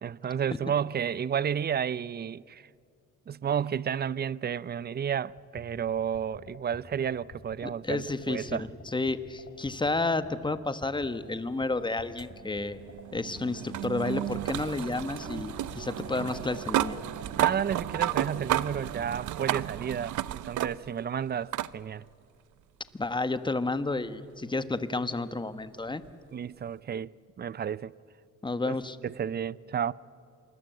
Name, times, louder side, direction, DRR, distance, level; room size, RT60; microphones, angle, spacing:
voice 1, 0.0-2.7 3.3-8.7 17.4-22.0 26.3-27.9 28.7-28.8 29.0-29.9, right 8 dB, 35° right, 0.5 m, -32 dB
sound 1, 5.3-19.1, left 5 dB, 50° left, 4.4 m, -49 dB
voice 2, 7.6-12.8 13.1-17.0 22.9-26.0 28.4-29.0, left 3 dB, 15° left, 1.3 m, -31 dB
sound 2, 12.2-21.1 21.5-21.7 23.0-23.1 26.0-26.1, right 13 dB, 75° right, 0.7 m, -32 dB
sound 3, 14.0-19.1, right 5 dB, 50° right, 1.8 m, -46 dB
27.0 x 21.0 x 8.0 m
cardioid pair, 90°, 30 cm